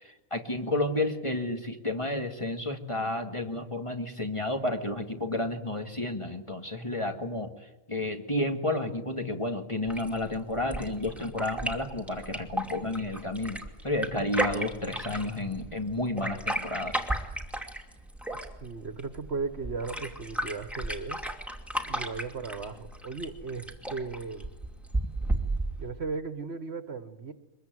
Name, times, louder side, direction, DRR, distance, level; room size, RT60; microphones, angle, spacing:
voice 1, 0.0-7.5 7.9-17.0, left 2 dB, 20° left, 4 dB, 2.0 m, -31 dB
sound 1, 9.9-25.9, right 1 dB, ahead, 2.5 m, -35 dB
voice 2, 18.6-21.2 21.8-24.5 25.8-27.3, right 4 dB, 50° right, 10 dB, 1.6 m, -36 dB
24.0 x 22.0 x 9.2 m, 0.98 s
omnidirectional pair, 1.4 m